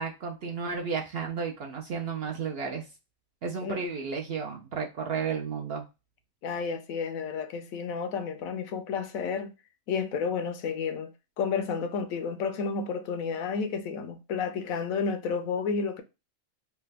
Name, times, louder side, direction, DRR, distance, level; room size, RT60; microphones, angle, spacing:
voice 1, 0.0-2.8 3.4-5.8, right 5 dB, 65° right, 0.6 m, -33 dB
voice 2, 6.4-9.5 9.9-16.0, left 5 dB, 80° left, 1.0 m, -31 dB
3.3 x 2.1 x 3.2 m
omnidirectional pair, 1.5 m